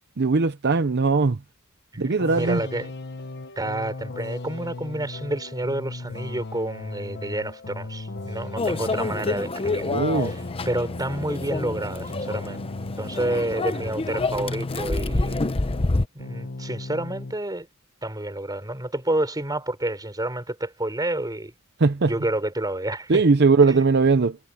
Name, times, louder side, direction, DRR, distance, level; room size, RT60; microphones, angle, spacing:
voice 1, 0.2-1.4 2.0-2.6 9.8-10.3 21.8-22.1 23.1-24.4, right 4 dB, 50° right, 0.7 m, -19 dB
voice 2, 1.9-2.9 3.6-12.6 13.0-15.4 16.1-17.7 18.0-21.5 22.1-23.2 23.7-23.8, right 1 dB, 20° right, 4.2 m, -29 dB
sound 1, 2.2-15.9 16.2-17.4, left 2 dB, 50° left, 1.3 m, -37 dB
Microwave oven, 8.6-16.0, left 2 dB, 25° left, 0.7 m, -28 dB
head